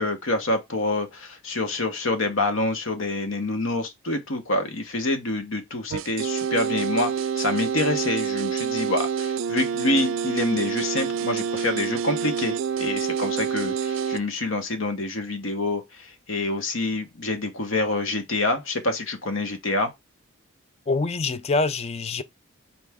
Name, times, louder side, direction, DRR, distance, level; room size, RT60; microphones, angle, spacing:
voice 1, 0.0-19.9, left 2 dB, 75° left, 1.1 m, -27 dB
sound 1, 5.9-14.2, right 7 dB, 65° right, 0.4 m, -27 dB
voice 2, 20.9-22.2, left 3 dB, 30° left, 0.4 m, -25 dB
4.2 x 3.4 x 3.5 m
head